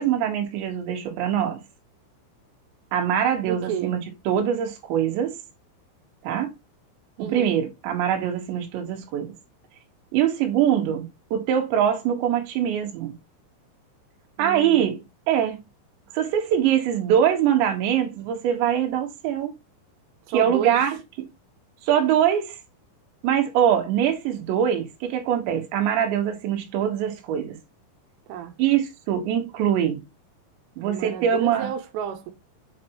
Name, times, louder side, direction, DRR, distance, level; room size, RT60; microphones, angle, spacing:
voice 1, 0.0-1.6 2.9-4.0 4.3-5.3 6.2-6.5 7.2-9.3 10.1-13.1 14.4-15.6 16.1-19.5 20.3-21.0 21.8-22.6 23.2-27.6 28.6-30.0 30.8-31.7, right 9 dB, 75° right, 3.6 m, -23 dB
voice 2, 3.5-4.0 7.2-7.6 14.4-14.8 20.3-20.8 28.3-28.5 30.8-32.3, right 8 dB, 90° right, 3.4 m, -31 dB
7.9 x 5.1 x 3.0 m
omnidirectional pair, 5.5 m